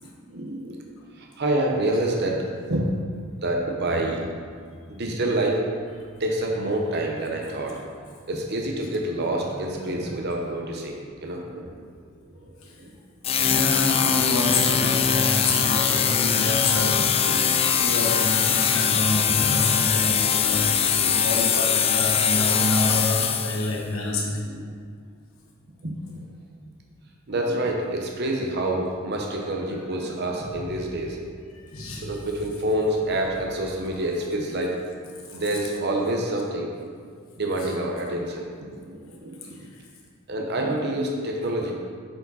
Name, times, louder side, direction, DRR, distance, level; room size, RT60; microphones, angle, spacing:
voice 1, 0.3-0.8 1.2-2.8 3.4-4.3 5.0-5.6 6.2-7.8 8.3-11.7 12.4-12.5 12.8-12.9 13.9-14.1 14.8-14.9 16.2-16.5 17.2-17.9 18.5-18.6 21.0-21.2 24.4-24.6 25.8-26.2 27.3-31.2 32.0-34.8 35.3-36.9 37.4-38.5 38.8-39.4 40.3-41.7, right 1 dB, 50° right, 0 dB, 0.9 m, -27 dB
sound 1, 13.2-23.8, left 7 dB, 30° left, 0.3 m, -22 dB
voice 2, 13.4-17.2 17.8-24.5 31.7-32.1, left 1 dB, 80° left, -1 dB, 1.2 m, -27 dB
7.7 x 4.9 x 4.1 m, 2.1 s
head